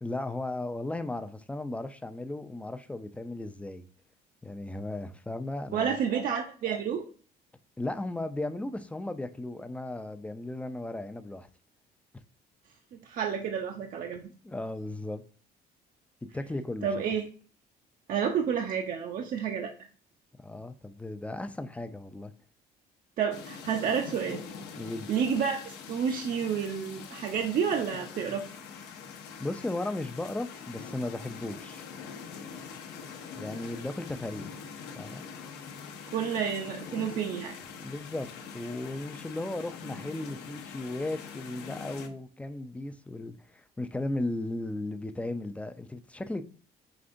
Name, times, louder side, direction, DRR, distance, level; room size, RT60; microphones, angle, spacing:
voice 1, 0.0-3.9 4.4-6.0 7.8-11.5 12.1-12.2 14.4-15.2 16.3-16.9 20.4-22.3 24.7-25.1 29.4-31.8 33.4-34.6 35.0-35.3 37.8-38.3 38.5-46.4, left 2 dB, 10° left, 0.4 m, -36 dB
voice 2, 5.7-7.0 12.9-14.3 16.8-17.3 18.1-19.7 23.2-24.4 25.1-28.5 36.1-37.6, right 7 dB, 55° right, 0.5 m, -30 dB
sound 1, 23.3-42.1, left 6 dB, 80° left, 0.8 m, -44 dB
5.0 x 3.3 x 2.5 m
cardioid pair, 110°, 17 cm